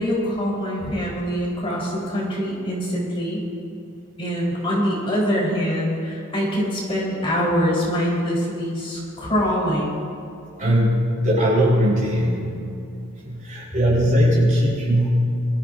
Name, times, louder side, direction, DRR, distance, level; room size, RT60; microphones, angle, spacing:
voice 1, 0.0-3.4 4.2-10.1, equal, 25° left, -6 dB, 3.9 m, -24 dB
voice 2, 10.6-12.6 13.3-15.1, equal, 35° right, -4 dB, 3.9 m, -19 dB
23.0 x 14.0 x 2.6 m, 2.6 s
head